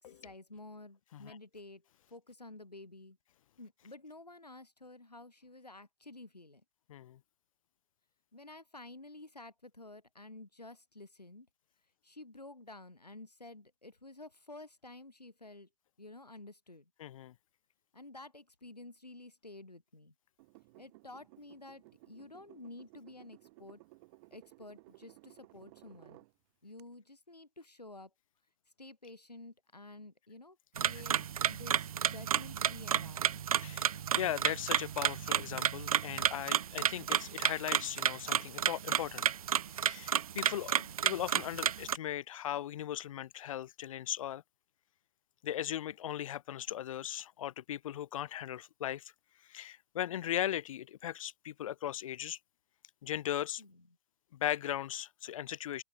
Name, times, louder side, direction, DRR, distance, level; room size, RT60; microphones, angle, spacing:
voice 1, 0.0-3.2 3.6-6.6 8.3-11.5 12.0-15.7 16.0-16.9 17.9-20.1 20.8-23.8 24.3-26.2 26.6-28.1 28.8-31.2 31.5-33.5 40.8-41.0 53.6-53.9, left 2 dB, 85° left, 3.8 m, -51 dB
voice 2, 17.0-17.3 33.6-39.2 39.8-40.8 41.0-44.4 45.4-49.0 49.5-52.4 53.0-53.6 54.4-55.8, left 11 dB, 55° left, 0.9 m, -38 dB
sound 1, 20.4-26.3 26.8-26.9, right 23 dB, 45° right, 5.8 m, -58 dB
sound 2, 30.8-42.0, right 9 dB, 65° right, 1.3 m, -31 dB
open air
figure-of-eight pair, 100°, 20 cm